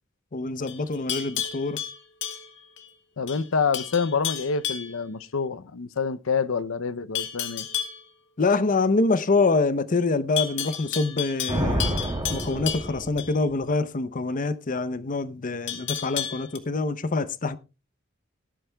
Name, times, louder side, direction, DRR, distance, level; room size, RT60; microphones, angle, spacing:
voice 1, 0.3-1.8 8.4-17.6, left 3 dB, 40° left, 0.7 m, -25 dB
Livestock farm animals working animals, 0.7-2.9 3.3-3.5 3.7-5.0 7.2-8.0 10.4-13.3 15.7-16.6, left 10 dB, 65° left, 1.7 m, -32 dB
voice 2, 3.2-7.7, left 5 dB, 80° left, 0.6 m, -27 dB
Thunder, 11.5-13.7, equal, 25° right, 2.2 m, -29 dB
18.5 x 11.5 x 2.3 m
head